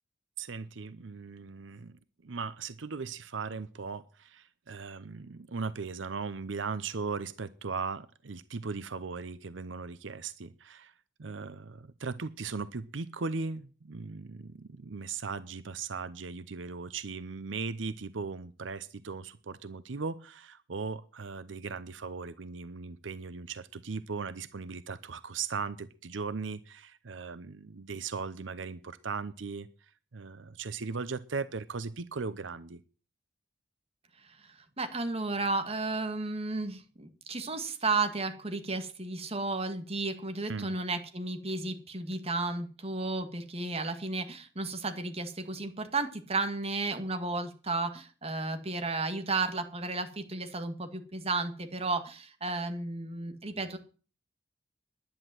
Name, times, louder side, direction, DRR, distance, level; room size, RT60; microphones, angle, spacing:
voice 1, 0.4-10.9 11.2-32.8 40.5-40.8, right 4 dB, 90° right, 15 dB, 0.7 m, -38 dB
voice 2, 34.4-53.8, right 3 dB, 35° right, 7 dB, 2.0 m, -33 dB
11.0 x 10.5 x 7.7 m, 0.38 s
head